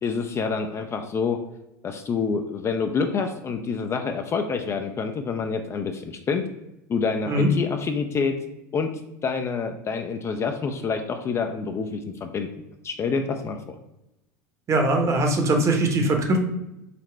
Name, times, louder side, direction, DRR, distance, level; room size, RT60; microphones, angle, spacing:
voice 1, 0.0-1.4 1.8-6.5 6.9-8.4 8.7-8.9 9.2-12.5 12.8-13.7, left 5 dB, 30° left, 5 dB, 0.4 m, -27 dB
voice 2, 14.7-16.4, right 2 dB, 30° right, 3 dB, 0.9 m, -21 dB
4.1 x 2.1 x 4.3 m, 0.89 s
hypercardioid pair, 90°, 10 cm